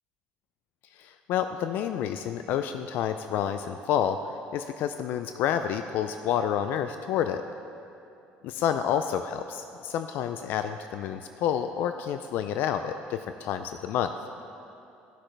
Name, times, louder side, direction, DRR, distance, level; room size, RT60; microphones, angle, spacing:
voice 1, 1.0-7.4 8.4-14.1, left 9 dB, 70° left, 9 dB, 0.3 m, -29 dB
14.5 x 5.9 x 3.3 m, 2.7 s
cardioid pair, 115°, 3 cm